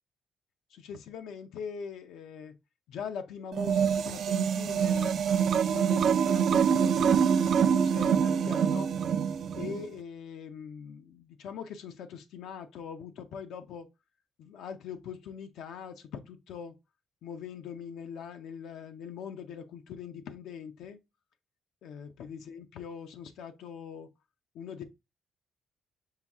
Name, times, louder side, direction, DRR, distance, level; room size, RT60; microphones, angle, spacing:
voice 1, 0.7-2.6 2.9-5.2 5.6-8.9 9.5-13.9 14.4-16.8 17.2-21.0 21.8-24.1 24.5-24.8, left 7 dB, 80° left, 0.5 m, -42 dB
sound 1, 3.5-9.8, right 7 dB, 60° right, 0.3 m, -25 dB
5.6 x 2.3 x 3.5 m
cardioid pair, 125°, 0 cm